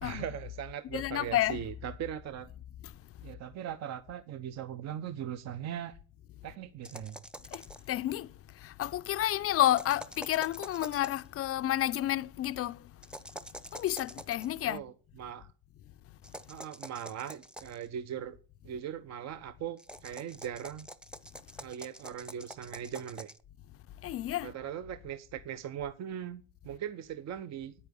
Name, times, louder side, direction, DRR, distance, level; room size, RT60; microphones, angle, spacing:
voice 1, 0.0-2.5 3.2-6.0 6.4-7.2 14.7-14.9 15.2-15.5 16.5-18.4 18.6-20.9 21.6-23.3 24.4-27.7, right 9 dB, 45° right, 0.9 m, -39 dB
voice 2, 0.9-1.6 7.5-7.6 7.9-8.3 8.6-12.8 13.7-14.8 24.0-24.5, left 13 dB, 40° left, 0.6 m, -30 dB
sound 1, 6.8-7.9 9.7-11.3 13.0-14.5 16.2-17.9 19.8-23.4, right 1 dB, 5° right, 0.8 m, -46 dB
9.7 x 8.8 x 7.0 m
cardioid pair, 115°, 36 cm